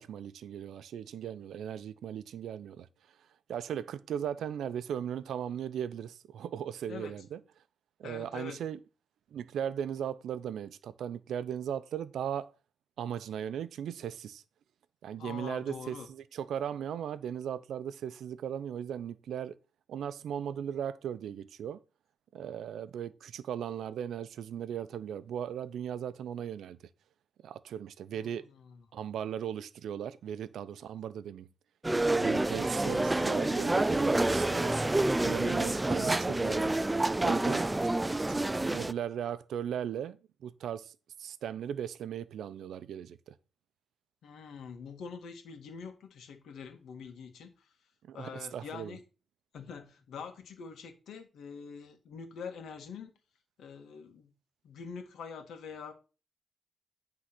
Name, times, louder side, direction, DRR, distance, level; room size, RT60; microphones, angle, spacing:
voice 1, 0.0-2.9 3.5-7.4 8.0-8.8 9.3-12.5 13.0-14.4 15.0-19.6 19.9-21.8 22.3-26.8 27.4-28.4 28.9-31.5 32.2-34.7 35.2-36.7 37.2-37.6 38.3-38.4 38.7-43.3 48.1-49.0, right 9 dB, 80° right, 0.6 m, -37 dB
voice 2, 8.0-8.6 15.2-16.1 28.1-28.8 44.2-47.7 48.1-49.0 49.5-53.1 53.6-54.3 54.6-55.9, left 6 dB, 85° left, 1.8 m, -45 dB
sound 1, 31.8-38.9, right 2 dB, 10° right, 0.3 m, -28 dB
9.7 x 3.8 x 6.0 m
wide cardioid pair, 140°, 0 cm